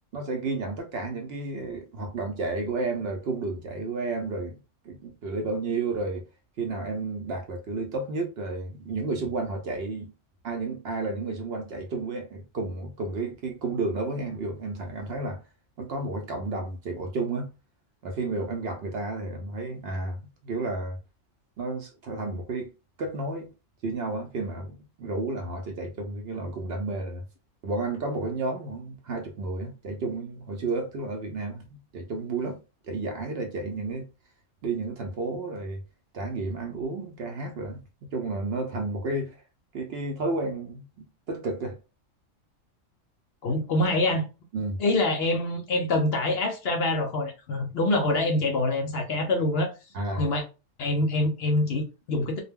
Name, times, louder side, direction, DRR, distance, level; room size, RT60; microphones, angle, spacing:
voice 1, 0.1-4.6 4.8-6.2 6.6-10.1 10.4-15.4 15.8-17.5 18.0-21.0 21.6-22.7 23.0-23.5 23.8-27.2 27.6-32.6 32.9-34.1 34.6-35.8 36.1-39.4 39.7-41.8 44.5-44.8 49.9-50.2, right 3 dB, 65° right, 0.7 m, -32 dB
voice 2, 43.4-44.2 44.8-49.7 50.1-50.4 50.8-52.4, left 2 dB, 60° left, 0.7 m, -25 dB
2.2 x 2.1 x 3.4 m
omnidirectional pair, 1.3 m